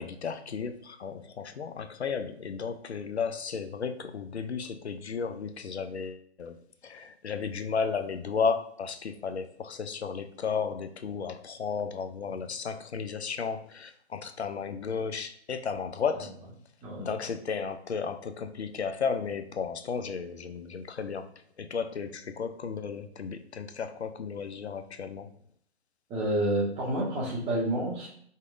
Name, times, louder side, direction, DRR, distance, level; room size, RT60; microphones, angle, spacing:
voice 1, 0.0-16.4 17.0-21.3 21.6-25.3, left 5 dB, 75° left, 9 dB, 0.6 m, -34 dB
voice 2, 26.1-28.1, right 1 dB, 15° right, -4 dB, 1.6 m, -29 dB
4.6 x 4.1 x 2.5 m, 0.63 s
figure-of-eight pair, 130°, 33 cm